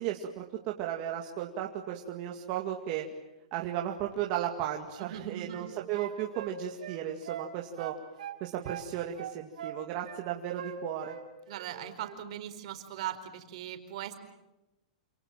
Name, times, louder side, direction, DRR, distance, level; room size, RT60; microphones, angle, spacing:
voice 1, 0.0-3.1 3.5-7.9 8.4-11.2, right 11 dB, 35° right, 1 dB, 2.2 m, -35 dB
voice 2, 5.0-5.7 11.5-14.1, right 11 dB, 50° right, 7 dB, 4.5 m, -40 dB
sound 1, 5.0-5.7 5.9-7.5 7.8-8.9 9.2-10.2 10.6-11.7 11.9-12.2, right 9 dB, 75° right, 5.2 m, -42 dB
28.5 x 28.0 x 7.5 m, 0.98 s
supercardioid pair, 165°, 4 cm